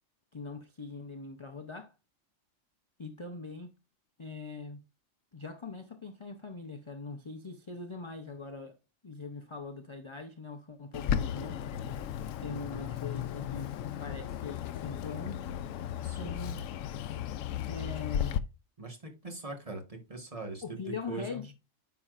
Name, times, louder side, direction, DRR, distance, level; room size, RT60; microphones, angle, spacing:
voice 1, 0.3-1.9 3.0-3.7 4.2-4.8 5.3-8.8 9.0-11.6 12.4-13.7 14.0-15.5 16.1-16.6 17.7-18.4 20.6-21.5, left 4 dB, 35° left, 0.5 m, -42 dB
Bird, 10.9-18.4, left 9 dB, 90° left, 1.0 m, -35 dB
voice 2, 16.0-16.4 18.8-20.8 21.1-21.5, right 3 dB, 30° right, 1.4 m, -41 dB
9.8 x 5.9 x 2.4 m
omnidirectional pair, 1.3 m